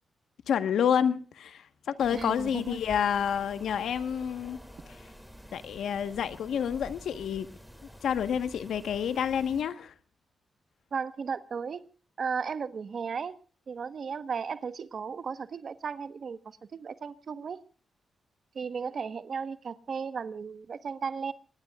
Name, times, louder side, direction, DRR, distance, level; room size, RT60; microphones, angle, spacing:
voice 1, 0.5-4.6 5.5-7.5 8.0-9.9, left 8 dB, 85° left, 1.3 m, -29 dB
sound 1, 2.0-9.6, equal, ahead, 2.8 m, -49 dB
voice 2, 2.1-2.8 10.9-11.8 12.2-13.4 13.7-17.6 18.5-21.3, right 6 dB, 60° right, 1.3 m, -35 dB
25.0 x 20.5 x 2.4 m
cardioid pair, 85°, 0 cm